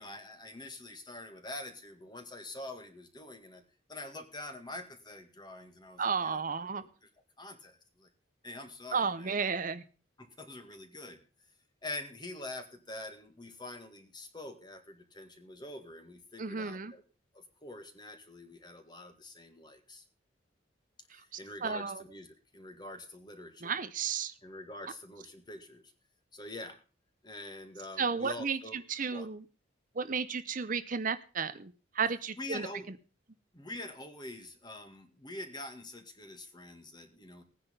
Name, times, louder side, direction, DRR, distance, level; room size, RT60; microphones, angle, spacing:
voice 1, 0.0-3.6 3.9-6.4 6.8-6.9 7.4-8.1 8.4-9.5 10.2-11.2 11.8-17.0 17.3-20.0 21.1-23.7 24.4-25.8 26.3-26.8 27.2-28.8 29.1-29.3 32.4-32.9 33.5-37.4, left 2 dB, 20° left, 7 dB, 1.9 m, -45 dB
voice 2, 6.0-6.8 8.9-9.8 16.4-16.9 21.6-22.0 23.6-24.3 28.0-29.4 30.0-32.7, right 5 dB, 45° right, 12 dB, 0.7 m, -33 dB
17.0 x 9.8 x 5.4 m, 0.36 s
head